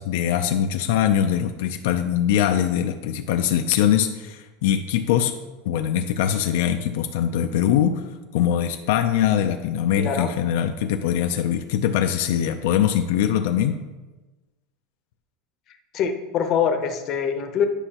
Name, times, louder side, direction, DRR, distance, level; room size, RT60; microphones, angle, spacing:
voice 1, 0.0-5.3 5.7-8.1 8.3-13.8, left 10 dB, 70° left, 6 dB, 0.4 m, -22 dB
voice 2, 10.0-10.3 15.9-17.7, left 7 dB, 35° left, 5 dB, 0.7 m, -24 dB
9.8 x 5.4 x 2.9 m, 1.2 s
supercardioid pair, 160°, 0 cm